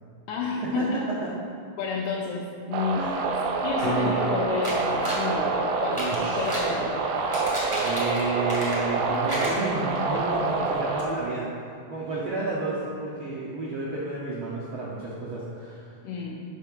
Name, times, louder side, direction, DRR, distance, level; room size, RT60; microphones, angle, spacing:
voice 1, 0.3-1.0 1.8-3.0 3.6-7.0 16.0-16.4, left 4 dB, 80° left, -4 dB, 2.1 m, -30 dB
sound 1, 2.7-11.0, right 3 dB, 90° right, 2.2 m, -27 dB
sound 2, 3.8-9.8 14.5-14.6, equal, 50° left, 1.1 m, -37 dB
sound 3, 4.6-5.3 5.8-6.7 7.2-9.0 9.3-10.2 10.6-10.7 11.0-11.1, equal, 25° right, 0.6 m, -33 dB
voice 2, 6.0-6.5 7.8-11.5 11.9-15.8, right 3 dB, 70° right, -6 dB, 1.3 m, -31 dB
6.3 x 5.7 x 5.3 m, 2.4 s
omnidirectional pair, 3.5 m